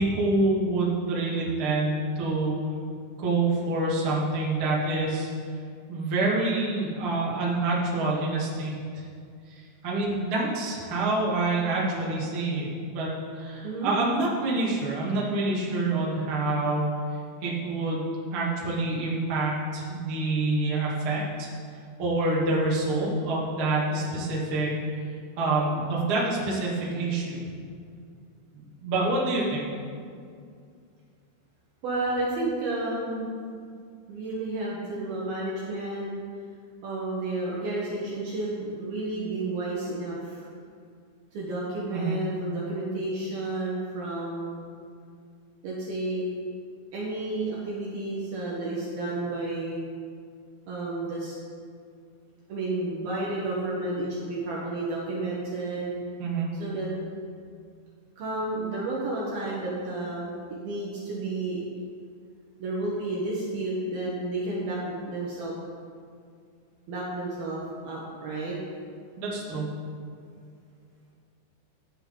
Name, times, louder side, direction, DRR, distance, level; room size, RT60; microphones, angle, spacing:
voice 1, 0.0-2.6 3.2-5.3 5.9-9.0 9.5-13.1 13.4-16.9 17.4-21.5 22.0-24.7 25.4-27.4 28.5-29.7 41.9-42.2 56.2-56.5 69.2-69.7, right 2 dB, 40° right, -5 dB, 2.1 m, -27 dB
voice 2, 31.8-33.4 34.1-36.1 36.8-40.5 41.3-44.7 45.6-46.3 46.9-49.8 50.7-51.4 52.5-55.9 56.6-56.9 58.2-61.6 62.6-65.5 66.9-67.6 67.8-68.6, right 2 dB, 65° right, -5 dB, 2.7 m, -31 dB
15.0 x 9.9 x 3.9 m, 2.3 s
omnidirectional pair, 5.7 m